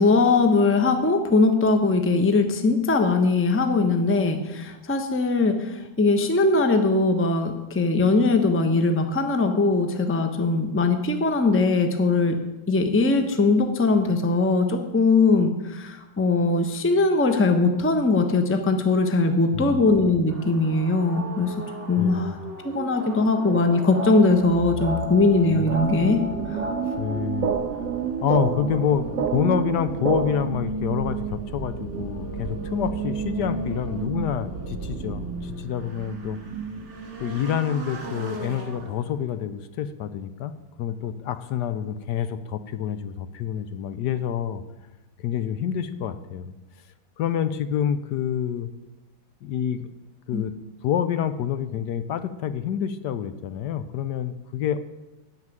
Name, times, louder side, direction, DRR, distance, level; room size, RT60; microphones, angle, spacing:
voice 1, 0.0-12.3 12.7-21.5 21.9-22.4 22.6-26.2 50.3-50.4, left 3 dB, 10° left, 6 dB, 0.7 m, -21 dB
sound 1, 20.3-39.4, right 5 dB, 40° right, 2.0 m, -33 dB
voice 2, 22.0-22.3 27.0-27.5 28.2-36.4 37.2-40.5 40.8-44.6 45.2-46.5 47.2-48.7 49.4-49.9 50.3-50.5 50.8-54.8, left 9 dB, 75° left, 12 dB, 1.2 m, -27 dB
sound 2, 23.5-30.5, right 5 dB, 55° right, 1.1 m, -31 dB
9.6 x 7.5 x 8.9 m, 1.1 s
omnidirectional pair, 1.9 m